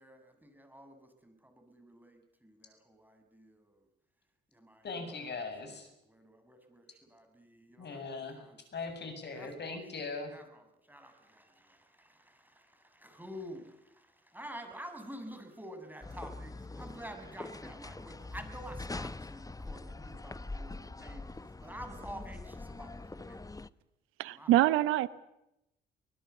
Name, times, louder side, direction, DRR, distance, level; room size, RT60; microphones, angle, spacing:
voice 1, 0.0-3.9 4.5-8.6 9.3-9.8 10.3-23.5 24.3-24.5, equal, 10° right, 6 dB, 7.1 m, -49 dB
voice 2, 4.8-5.9 7.8-8.4 8.7-10.3, left 4 dB, 55° left, 7 dB, 7.6 m, -40 dB
sound 1, 16.0-23.7, left 2 dB, 15° left, 1.0 m, -43 dB
voice 3, 24.2-25.1, right 14 dB, 80° right, 17 dB, 0.9 m, -25 dB
23.5 x 19.5 x 8.3 m, 0.85 s
hypercardioid pair, 50°, 21 cm